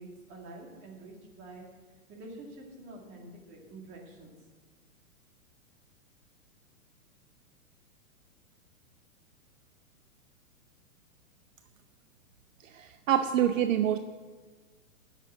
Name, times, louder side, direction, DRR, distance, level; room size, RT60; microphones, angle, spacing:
voice 1, 0.0-1.6 2.1-4.3, right 2 dB, 25° right, 0 dB, 2.2 m, -47 dB
voice 2, 12.7-14.0, right 10 dB, 60° right, 9 dB, 0.7 m, -26 dB
9.9 x 7.5 x 8.9 m, 1.4 s
hypercardioid pair, 165°, 43 cm